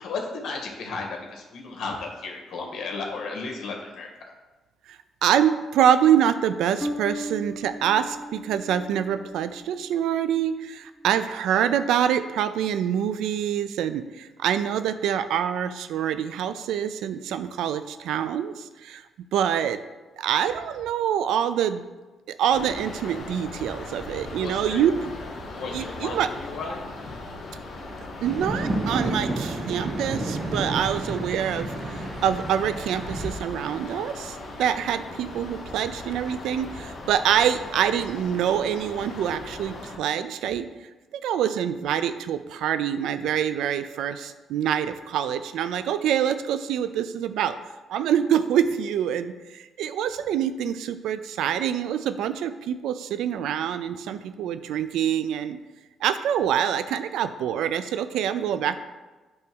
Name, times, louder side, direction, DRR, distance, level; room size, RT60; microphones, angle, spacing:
voice 1, 0.0-4.1 24.4-24.9 25.5-27.2, left 4 dB, 70° left, 0 dB, 1.9 m, -34 dB
voice 2, 4.9-19.0 19.3-19.8 20.2-21.8 22.4-24.9 25.7-26.3 28.2-31.7 32.2-40.7 41.1-47.6 47.9-55.6 56.0-58.8, right 9 dB, 85° right, 12 dB, 0.4 m, -25 dB
Bass guitar, 6.8-10.3, equal, 25° left, 1.7 m, -37 dB
sound 1, 22.5-40.0, left 2 dB, 55° left, 1.6 m, -39 dB
sound 2, 28.2-33.3, right 2 dB, 35° right, 1.3 m, -30 dB
8.6 x 3.5 x 6.1 m, 1.2 s
cardioid pair, 90°, 0 cm